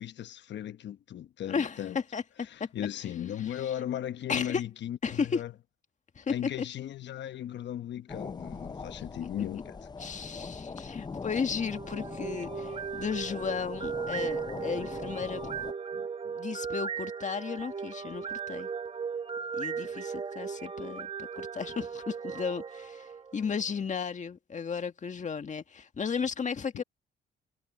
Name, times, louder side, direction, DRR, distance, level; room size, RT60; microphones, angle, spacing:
voice 1, 0.0-2.0 2.7-5.5 6.3-9.7 26.7-26.8, left 10 dB, 65° left, 1.0 m, -36 dB
voice 2, 1.5-2.7 3.4-3.7 4.3-4.7 5.0-5.4 6.1-6.6 9.2-9.3 10.0-15.5 15.9-18.7 19.5-26.8, left 6 dB, 40° left, 1.7 m, -34 dB
sound 1, 8.1-15.7, left 4 dB, 20° left, 0.6 m, -42 dB
sound 2, 11.5-23.6, right 6 dB, 30° right, 1.1 m, -37 dB
cardioid pair, 90°, 20 cm